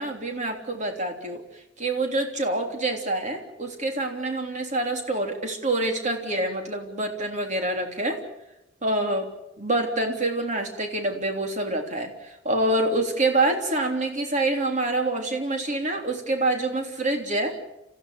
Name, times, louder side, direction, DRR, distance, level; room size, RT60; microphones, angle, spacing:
voice 1, 0.0-1.4 1.8-8.2 8.8-9.3 9.6-12.1 12.5-17.6, right 2 dB, 40° right, 3 dB, 3.4 m, -26 dB
28.5 x 15.0 x 8.1 m, 0.90 s
head